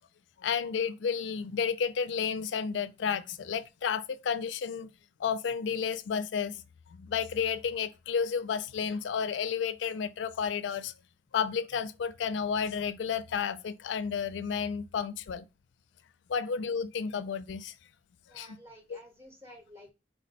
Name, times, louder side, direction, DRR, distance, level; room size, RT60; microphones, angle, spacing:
voice 1, 0.4-4.9 5.2-6.6 6.9-10.9 11.3-15.4 16.3-17.7 18.3-18.6 18.9-19.0, left 6 dB, 75° left, 0.4 m, -32 dB
voice 2, 18.3-19.9, equal, 15° right, 0.9 m, -52 dB
4.5 x 2.1 x 4.0 m
head